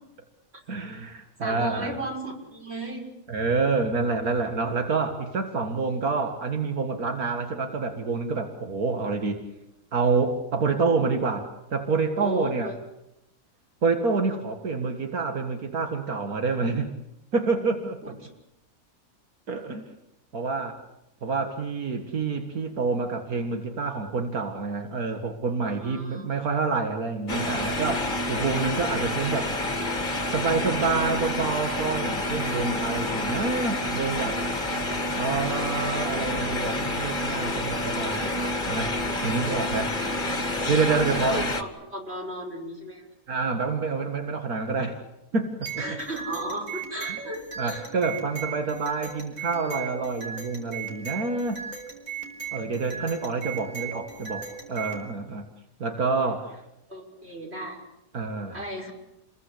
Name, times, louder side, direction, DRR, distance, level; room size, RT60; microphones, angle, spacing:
voice 1, 0.7-1.9 3.3-9.4 9.9-12.7 13.8-16.9 17.3-18.0 19.5-19.9 20.3-20.8 21.2-29.5 30.3-34.4 35.2-38.3 38.7-38.9 39.2-40.0 40.7-41.5 43.3-45.0 45.3-45.7 47.6-51.6 52.5-55.5 55.8-56.6 58.1-58.6, right 4 dB, 85° right, 5 dB, 2.4 m, -27 dB
voice 2, 1.4-3.1 12.2-12.8 25.6-26.4 40.9-43.1 45.8-47.9 56.9-57.8 58.5-58.9, right 1 dB, 45° right, 1 dB, 6.6 m, -35 dB
sound 1, 27.3-41.6, left 1 dB, 35° left, 2.3 m, -28 dB
sound 2, 45.6-55.1, right 7 dB, 70° right, 5.4 m, -37 dB
29.5 x 21.5 x 8.5 m, 0.88 s
omnidirectional pair, 1.5 m